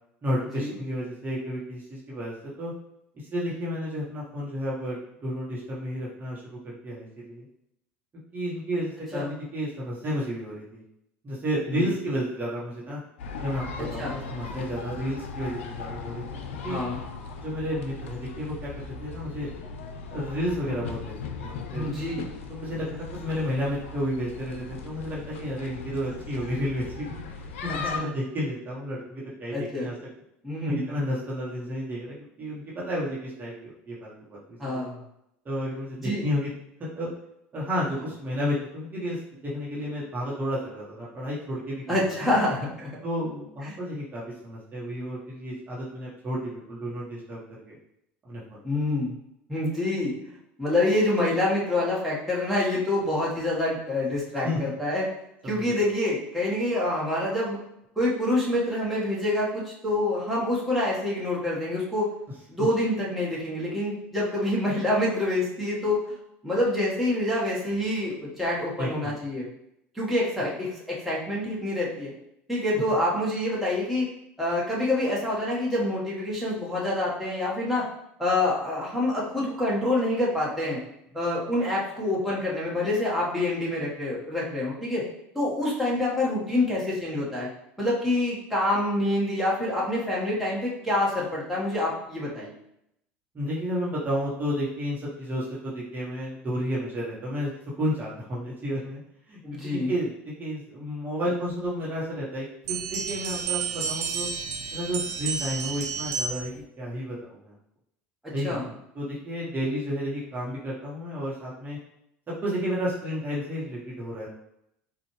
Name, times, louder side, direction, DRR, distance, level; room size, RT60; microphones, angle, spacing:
voice 1, 0.2-2.7 3.3-7.5 8.3-10.8 11.2-13.0 13.4-16.2 16.6-16.8 17.4-18.7 19.0-19.7 20.1-22.0 22.5-29.9 30.6-34.8 35.4-36.5 36.9-37.1 37.5-42.1 43.0-47.4 47.7-47.8 48.2-48.7 54.4-54.6 55.4-55.7 62.6-62.7 68.8-69.2 72.7-72.8 93.3-97.5 97.8-99.0 99.3-104.3 104.7-107.5 108.3-108.7 108.9-111.8 112.4-114.3, equal, 25° right, -6 dB, 1.2 m, -32 dB
sound 1, 13.2-28.0, left 5 dB, 80° left, 0.4 m, -38 dB
voice 2, 13.8-14.2 16.7-17.0 21.7-22.3 27.7-28.1 29.5-29.9 30.4-30.8 34.6-35.0 36.0-36.2 41.9-42.9 43.7-43.8 48.6-49.1 49.5-50.1 50.6-55.1 55.4-57.6 57.9-62.1 62.5-66.0 66.4-69.5 69.9-72.1 72.5-74.1 74.4-77.8 78.2-80.8 81.1-85.0 85.3-87.5 87.8-92.5 99.4-99.9 108.2-108.6, left 1 dB, ahead, -7 dB, 1.4 m, -26 dB
sound 2, 102.7-106.6, right 6 dB, 60° right, 0.5 m, -31 dB
4.0 x 2.4 x 3.2 m, 0.79 s
hypercardioid pair, 75°, 7 cm